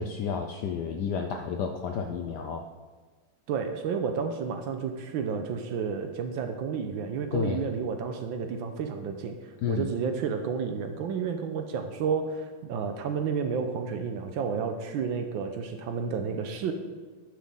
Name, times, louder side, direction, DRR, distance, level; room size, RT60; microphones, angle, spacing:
voice 1, 0.0-2.7 7.3-7.6 9.6-9.9, left 6 dB, 75° left, 4 dB, 0.9 m, -31 dB
voice 2, 3.5-16.7, right 6 dB, 70° right, 6 dB, 1.3 m, -31 dB
11.0 x 5.9 x 3.6 m, 1.4 s
omnidirectional pair, 2.4 m